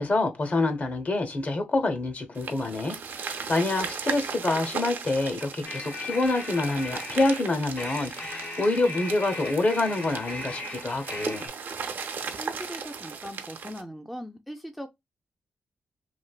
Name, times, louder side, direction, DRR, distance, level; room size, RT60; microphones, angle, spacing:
voice 1, 0.0-11.4, left 2 dB, 45° left, 0.8 m, -27 dB
sound 1, 2.4-13.8, right 5 dB, 70° right, 0.6 m, -37 dB
sound 2, 5.6-11.5, left 2 dB, 75° left, 1.1 m, -38 dB
voice 2, 12.4-14.9, equal, ahead, 0.4 m, -39 dB
3.2 x 2.5 x 2.3 m
cardioid pair, 75°, 4 cm